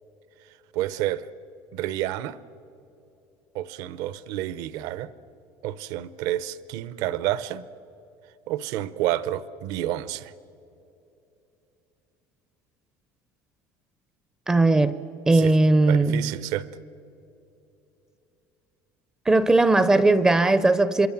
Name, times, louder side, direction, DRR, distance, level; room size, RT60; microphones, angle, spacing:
voice 1, 0.7-1.3 1.7-2.4 3.5-5.1 5.6-7.7 8.5-10.3 15.3-15.5 15.9-16.7, right 13 dB, 65° right, 0.8 m, -29 dB
voice 2, 14.5-15.0 15.3-16.3 19.3-21.1, right 2 dB, 10° right, 0.5 m, -18 dB
26.5 x 22.5 x 7.2 m
cardioid pair, 180°, 7 cm